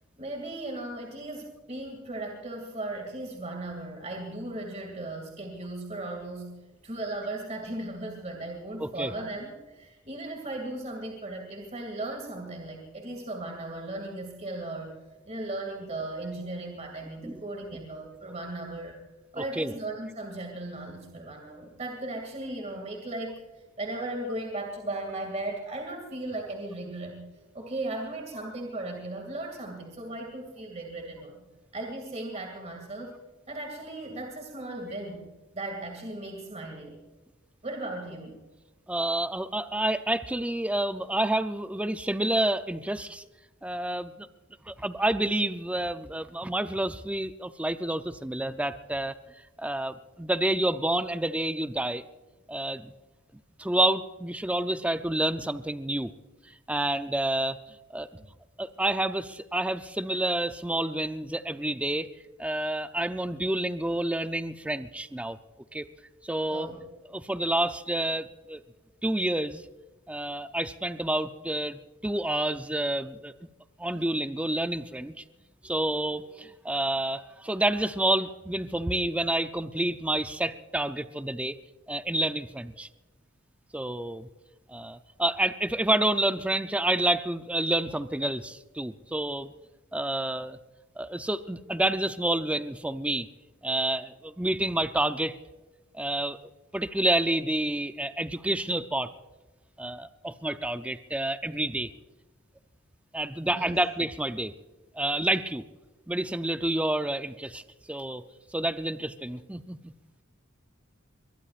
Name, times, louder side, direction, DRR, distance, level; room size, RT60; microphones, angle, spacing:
voice 1, 0.2-15.0 15.3-19.0 19.3-27.2 27.5-31.5 31.7-33.1 33.5-37.0 37.6-38.4 58.1-58.3 66.5-66.8 103.5-103.8, right 2 dB, 35° right, 2 dB, 2.3 m, -37 dB
voice 2, 8.8-9.1 17.2-17.4 19.4-19.7 38.9-43.2 43.6-44.3 44.7-49.1 49.6-52.0 52.5-52.9 53.6-56.1 56.7-57.6 57.9-58.1 58.6-62.1 62.4-65.4 65.7-65.9 66.2-66.7 67.1-68.6 69.0-69.6 70.1-73.3 73.8-75.2 75.6-81.6 81.9-82.9 83.7-84.3 84.7-89.5 89.9-90.6 91.0-93.3 93.6-95.4 95.9-96.4 96.7-99.1 99.8-101.9 103.1-104.5 104.9-105.6 106.1-107.6 107.9-108.2 108.5-109.9, right 1 dB, 5° right, 10 dB, 0.5 m, -29 dB
22.5 x 21.5 x 2.5 m, 1.2 s
head